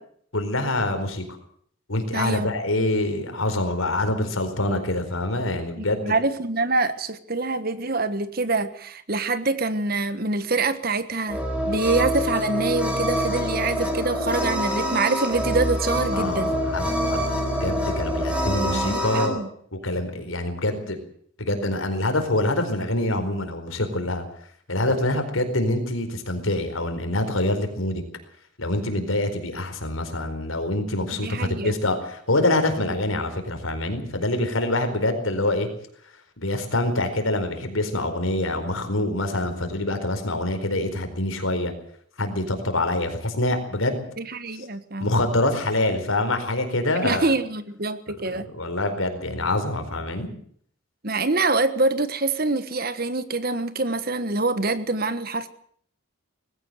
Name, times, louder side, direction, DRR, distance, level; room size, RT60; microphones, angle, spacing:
voice 1, 0.3-1.2 1.9-6.1 16.1-19.4 19.8-21.0 21.4-24.2 24.7-28.0 28.6-35.7 36.4-41.7 42.2-44.1 44.5-44.7 45.0-47.2 48.3-50.3, left 1 dB, 80° left, 7 dB, 4.5 m, -25 dB
voice 2, 2.1-2.5 5.8-16.5 18.6-19.5 31.1-31.8 44.2-45.1 47.0-48.5 51.0-55.5, right 3 dB, 45° right, 12 dB, 1.4 m, -25 dB
sound 1, 11.3-19.3, equal, 5° right, 4.4 m, -26 dB
20.0 x 16.5 x 8.0 m, 0.62 s
head